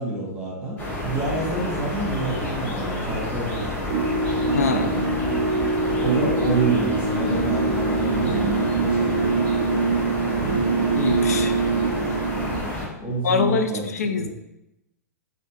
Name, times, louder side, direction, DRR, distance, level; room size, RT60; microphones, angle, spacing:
voice 1, 0.0-4.0 4.7-5.1 6.0-9.3 13.0-14.3, right 2 dB, 10° right, -4 dB, 1.1 m, -29 dB
sound 1, 0.8-12.9, left 1 dB, 20° left, 0.9 m, -29 dB
sound 2, 3.9-12.6, right 4 dB, 55° right, 0.4 m, -23 dB
voice 2, 4.5-4.9 10.9-11.5 13.2-14.3, left 5 dB, 60° left, 8 dB, 0.4 m, -24 dB
3.3 x 2.6 x 2.8 m, 0.90 s
figure-of-eight pair, 105°, 9 cm